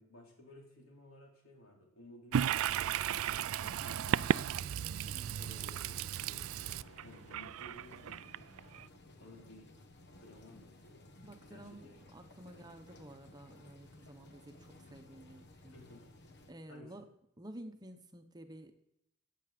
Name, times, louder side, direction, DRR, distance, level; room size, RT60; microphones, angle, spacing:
voice 1, 0.0-3.1 3.8-4.7 5.4-8.5 9.2-9.7 10.2-11.1 11.5-11.6 12.5-12.7 15.7-16.0 16.7-16.9, left 1 dB, 75° left, -1 dB, 4.1 m, -56 dB
Toilet flush, 2.3-8.9, right 9 dB, 80° right, 0.3 m, -35 dB
sound 1, 3.3-16.5, left 2 dB, 55° left, 1.3 m, -57 dB
voice 2, 3.6-4.1 5.0-5.4 11.2-15.8 16.5-17.1 17.4-18.8, right 1 dB, 20° right, 7 dB, 1.0 m, -52 dB
14.5 x 9.4 x 5.1 m, 0.76 s
head